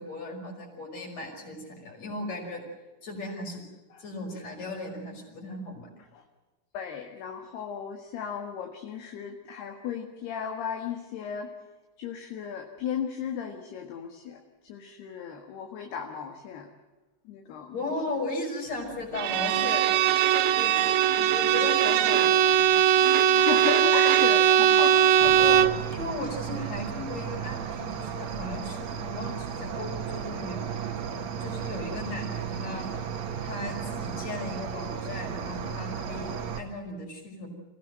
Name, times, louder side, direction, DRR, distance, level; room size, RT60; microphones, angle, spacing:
voice 1, 0.0-2.6 3.0-3.6 4.0-5.9 17.7-20.0 20.5-20.7 21.0-22.7 24.6-25.6 25.9-30.8 31.4-32.9 33.4-37.5, left 2 dB, 35° left, 1 dB, 6.4 m, -36 dB
voice 2, 6.7-11.5 12.0-16.7 17.3-17.9 20.3-20.9 23.3-25.6, left 7 dB, 70° left, 3 dB, 3.6 m, -35 dB
Bowed string instrument, 19.2-25.8, right 10 dB, 85° right, 3.3 m, -20 dB
Cricket, 25.2-36.6, right 7 dB, 55° right, 2.2 m, -34 dB
27.0 x 16.5 x 7.7 m, 1.2 s
omnidirectional pair, 5.1 m